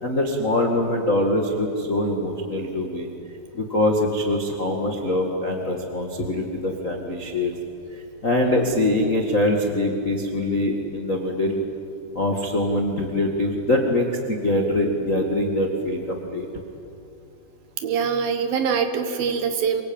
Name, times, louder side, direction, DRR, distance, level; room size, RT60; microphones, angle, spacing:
voice 1, 0.0-3.1 3.5-7.5 7.9-11.6 12.1-16.5, left 1 dB, 40° left, 1 dB, 1.1 m, -23 dB
voice 2, 17.8-19.8, right 6 dB, 65° right, 7 dB, 2.9 m, -23 dB
26.0 x 23.0 x 8.9 m, 2.7 s
omnidirectional pair, 4.9 m